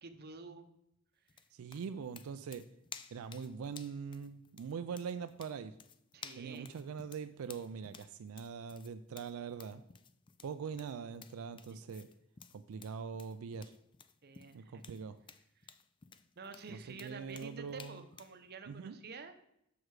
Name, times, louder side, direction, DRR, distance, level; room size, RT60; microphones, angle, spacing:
voice 1, 0.0-0.7 6.1-6.7 11.7-11.8 14.2-14.9 15.6-15.7 16.4-19.4, right 4 dB, 50° right, 8 dB, 0.7 m, -49 dB
sound 1, 1.3-18.4, left 6 dB, 25° left, 0.3 m, -55 dB
voice 2, 1.5-2.6 3.1-5.7 6.4-9.8 10.4-12.1 12.5-13.7 14.5-15.2 16.7-18.0 18.7-19.0, right 6 dB, 85° right, 10 dB, 0.4 m, -42 dB
6.5 x 6.1 x 4.7 m, 0.77 s
head